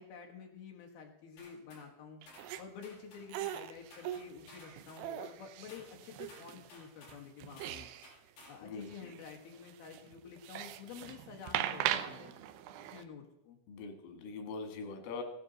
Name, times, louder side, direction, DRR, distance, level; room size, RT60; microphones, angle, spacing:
voice 1, 0.0-2.2 2.6-7.9 8.5-12.3 12.9-13.6, left 6 dB, 65° left, 1 dB, 2.6 m, -50 dB
sound 1, 1.4-1.9 2.3-2.5 2.8-3.7 3.9-5.1 5.7-5.9 6.3-7.2 7.6-8.6, left 2 dB, 50° left, 6.1 m, -56 dB
sound 2, 2.2-2.6 3.3-6.7 7.1-8.1 8.4-8.5 8.8-13.0, right 12 dB, 85° right, 2.4 m, -40 dB
voice 2, 8.6-9.1 13.7-15.2, left 4 dB, 90° left, 4 dB, 4.4 m, -43 dB
16.5 x 11.5 x 3.9 m, 0.85 s
omnidirectional pair, 5.6 m